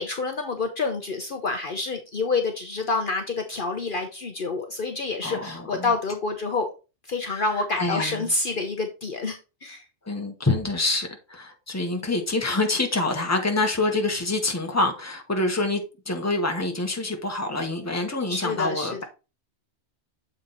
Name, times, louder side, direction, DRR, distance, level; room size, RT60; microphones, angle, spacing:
voice 1, 0.0-6.7 7.1-9.8 18.3-19.0, left 3 dB, 50° left, 1.0 m, -28 dB
voice 2, 5.2-5.9 7.3-7.4 7.8-8.2 10.0-19.0, left 2 dB, 15° left, 1.2 m, -26 dB
7.4 x 4.4 x 4.0 m
omnidirectional pair, 1.2 m